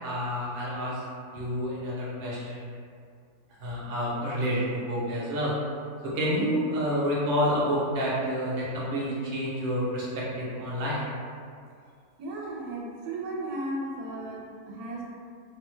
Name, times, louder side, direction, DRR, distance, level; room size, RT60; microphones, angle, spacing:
voice 1, 0.0-1.0 1.3-2.7 3.6-5.5 6.0-11.0, equal, 50° right, -7 dB, 0.6 m, -29 dB
voice 2, 12.2-15.0, right 1 dB, 80° right, -4 dB, 1.1 m, -35 dB
2.7 x 2.2 x 3.1 m, 2.2 s
omnidirectional pair, 1.7 m